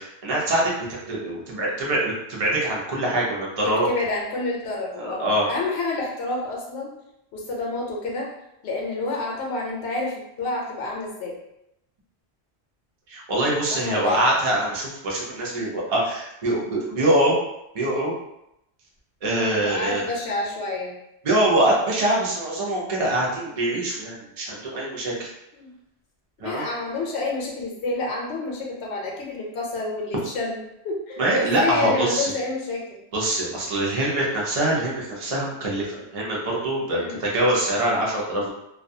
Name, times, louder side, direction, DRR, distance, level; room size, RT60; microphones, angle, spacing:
voice 1, 0.0-3.9 5.0-5.5 13.1-17.3 17.7-18.1 19.2-20.0 21.2-25.3 26.4-26.6 31.2-32.3 33.1-38.5, right 1 dB, 40° right, -4 dB, 0.6 m, -24 dB
voice 2, 3.6-6.9 7.3-8.3 8.6-11.4 13.7-14.3 19.6-20.9 25.6-25.7 26.4-32.8 37.0-37.2, left 3 dB, 75° left, -2 dB, 0.9 m, -29 dB
2.3 x 2.3 x 2.6 m, 0.83 s
omnidirectional pair, 1.1 m